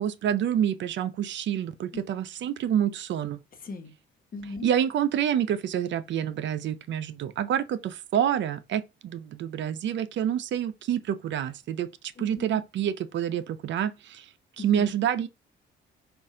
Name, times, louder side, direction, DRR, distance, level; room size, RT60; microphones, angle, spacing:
voice 1, 0.0-3.4 4.6-11.9 12.2-14.3 14.6-15.3, right 9 dB, 65° right, 0.6 m, -27 dB
voice 2, 3.6-3.9 4.3-4.7 12.2-12.6 14.6-14.9, left 3 dB, 45° left, 1.2 m, -39 dB
5.4 x 2.6 x 3.6 m
cardioid pair, 90°, 20 cm